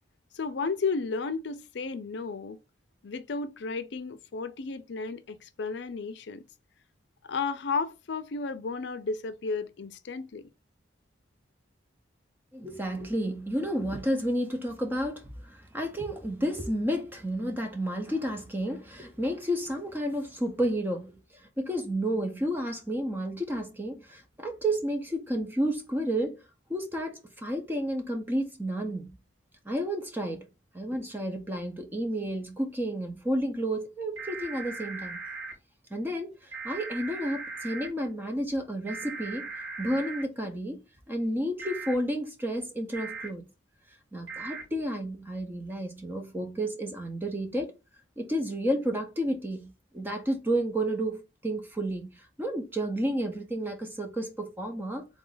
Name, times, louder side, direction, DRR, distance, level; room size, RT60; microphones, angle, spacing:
voice 1, 0.3-2.6 3.0-6.4 7.3-10.5, left 4 dB, 60° left, 0.4 m, -33 dB
voice 2, 12.5-26.4 26.7-29.2 29.7-30.5 30.7-35.2 35.9-39.5 39.8-43.4 44.1-47.7 48.2-55.1, right 1 dB, 10° right, 0.5 m, -31 dB
sound 1, 34.2-35.5 36.5-37.9 38.9-40.2 41.6-41.9 42.9-43.3 44.3-44.6, right 4 dB, 90° right, 2.1 m, -38 dB
3.6 x 2.4 x 3.8 m
head